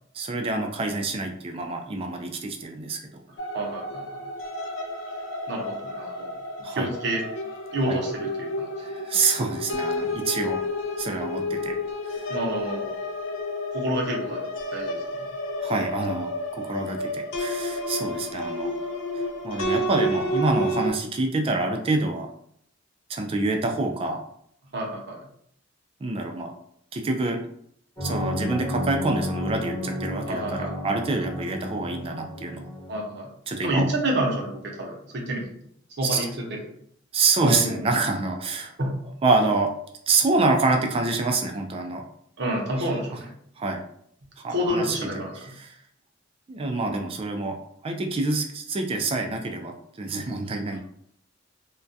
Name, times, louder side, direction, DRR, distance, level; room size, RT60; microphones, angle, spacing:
voice 1, 0.1-3.0 6.6-6.9 7.9-8.0 8.8-10.6 11.0-11.8 12.1-12.3 15.6-18.7 19.1-22.3 23.1-24.2 26.0-26.5 26.9-27.4 28.0-32.6 33.5-33.9 36.0-36.2 37.1-38.7 39.2-39.7 40.1-42.0 42.8-42.9 43.6-43.8 44.4-44.9 45.4-45.7 46.5-47.6 47.8-50.8, right 3 dB, 30° right, 4 dB, 0.3 m, -26 dB
sound 1, 3.4-20.9, left 1 dB, 85° left, 0.4 m, -31 dB
voice 2, 3.5-4.0 5.5-6.3 6.7-7.2 7.7-8.7 12.3-12.9 13.7-14.4 14.7-15.2 24.7-25.2 30.3-30.7 32.9-33.3 33.6-35.5 36.0-36.6 37.4-37.8 38.8-39.0 42.4-43.3 44.5-45.3, right 1 dB, 60° right, -2 dB, 0.7 m, -28 dB
sound 2, 28.0-33.0, left 1 dB, 15° left, 0.9 m, -32 dB
2.2 x 2.2 x 2.6 m, 0.68 s
head